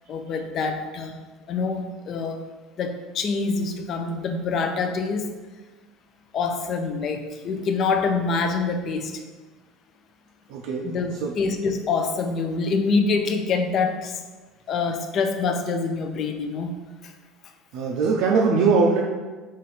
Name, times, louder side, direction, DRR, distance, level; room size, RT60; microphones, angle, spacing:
voice 1, 0.1-1.2 1.5-2.4 2.8-5.3 6.3-9.2 10.8-14.2 14.7-16.7 17.0-17.1, left 4 dB, 50° left, 6 dB, 0.4 m, -25 dB
voice 2, 10.5-11.0 11.2-11.3 17.7-19.0, right 4 dB, 70° right, -2 dB, 0.4 m, -21 dB
4.1 x 2.5 x 3.9 m, 1.3 s
supercardioid pair, 85°, 0 cm